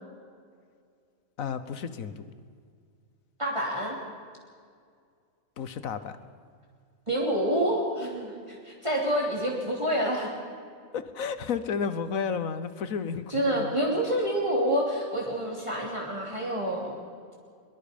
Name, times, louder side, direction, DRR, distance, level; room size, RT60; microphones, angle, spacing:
voice 1, 1.4-2.3 5.6-6.2 10.9-13.7, left 6 dB, 80° left, 12 dB, 1.5 m, -32 dB
voice 2, 3.4-4.0 7.1-10.3 13.3-16.9, equal, 20° right, -3 dB, 3.1 m, -28 dB
23.5 x 22.0 x 5.2 m, 2.2 s
omnidirectional pair, 1.4 m